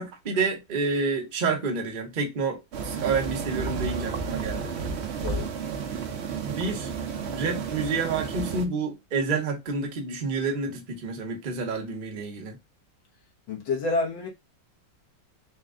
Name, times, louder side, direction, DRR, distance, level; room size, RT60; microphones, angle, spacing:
voice 1, 0.0-4.7 6.4-6.9 7.3-12.6, right 4 dB, 35° right, 0.8 m, -29 dB
sound 1, 2.7-8.6, right 5 dB, 85° right, 0.5 m, -32 dB
voice 2, 5.2-5.5 13.5-14.3, left 3 dB, 75° left, 1.8 m, -28 dB
4.3 x 2.3 x 3.6 m
omnidirectional pair, 2.0 m